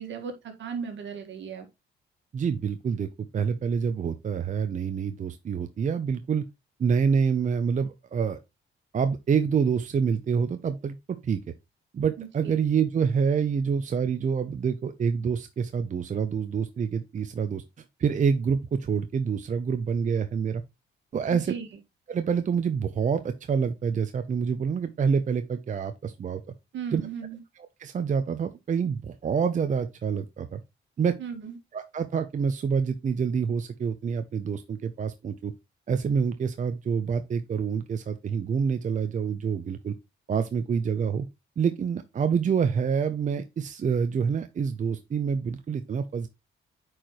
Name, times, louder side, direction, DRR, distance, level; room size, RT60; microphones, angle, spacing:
voice 1, 0.0-1.7 12.2-12.5 21.3-21.7 26.7-27.4 31.2-31.6, right 6 dB, 70° right, 1.8 m, -36 dB
voice 2, 2.3-6.4 6.8-8.4 8.9-11.4 11.9-17.6 18.0-20.6 21.1-21.5 22.1-26.4 26.9-27.0 27.8-30.6 31.0-31.1 31.7-35.5 35.9-39.9 40.3-41.3 41.6-46.3, right 6 dB, 40° right, 0.6 m, -27 dB
8.6 x 4.8 x 3.0 m
cardioid pair, 90°, 20 cm